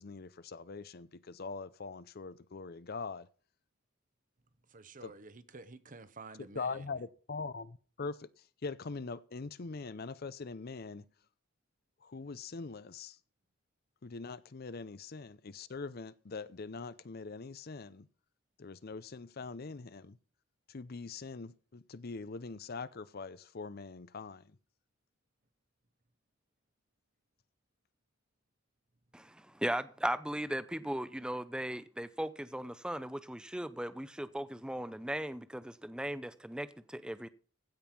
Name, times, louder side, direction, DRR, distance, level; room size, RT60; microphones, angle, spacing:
voice 1, 0.0-3.3 5.0-5.1 6.4-8.3 8.6-11.0 12.0-13.2 14.0-18.1 18.6-20.2 20.7-24.6, left 4 dB, 50° left, 0.6 m, -42 dB
voice 2, 4.7-6.9, right 3 dB, 40° right, 1.0 m, -51 dB
voice 3, 29.1-37.3, right 1 dB, 5° right, 0.6 m, -37 dB
15.5 x 5.4 x 6.0 m
head